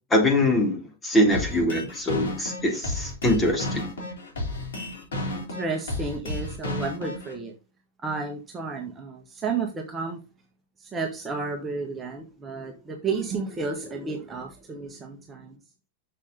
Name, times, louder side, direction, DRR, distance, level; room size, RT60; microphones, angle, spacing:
voice 1, 0.1-3.9, left 1 dB, 15° left, 1 dB, 3.4 m, -23 dB
sound 1, 1.3-7.3, left 1 dB, 65° left, 3.3 m, -32 dB
voice 2, 5.3-7.5 8.0-10.2 10.8-15.6, right 4 dB, 20° right, 1 dB, 1.5 m, -32 dB
6.8 x 6.3 x 3.9 m, 0.29 s
figure-of-eight pair, 90°, 0 cm